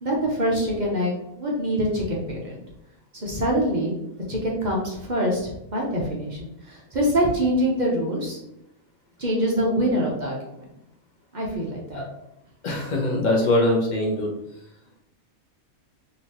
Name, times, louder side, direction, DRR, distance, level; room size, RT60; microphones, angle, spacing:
voice 1, 0.0-2.6 3.1-3.9 4.3-8.4 9.2-10.7 11.3-12.0, equal, 40° right, -3 dB, 0.8 m, -25 dB
voice 2, 12.6-14.3, left 1 dB, 40° left, -1 dB, 0.8 m, -22 dB
4.0 x 2.8 x 2.9 m, 0.84 s
omnidirectional pair, 1.4 m